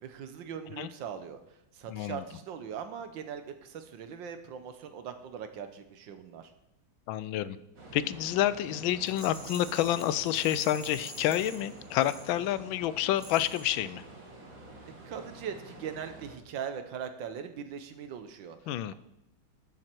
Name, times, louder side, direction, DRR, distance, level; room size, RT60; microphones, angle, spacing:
voice 1, 0.0-1.4 1.7-6.5 15.0-18.9, right 7 dB, 75° right, 9 dB, 1.6 m, -40 dB
voice 2, 1.9-2.2 7.1-7.6 7.9-14.0 18.7-18.9, left 12 dB, 85° left, 16 dB, 1.4 m, -29 dB
sound 1, 7.8-16.4, right 2 dB, 45° right, 2.1 m, -48 dB
Rattle, 9.0-12.7 13.1-13.8, right 1 dB, 10° right, 1.7 m, -47 dB
12.5 x 7.5 x 4.5 m, 0.83 s
omnidirectional pair, 2.1 m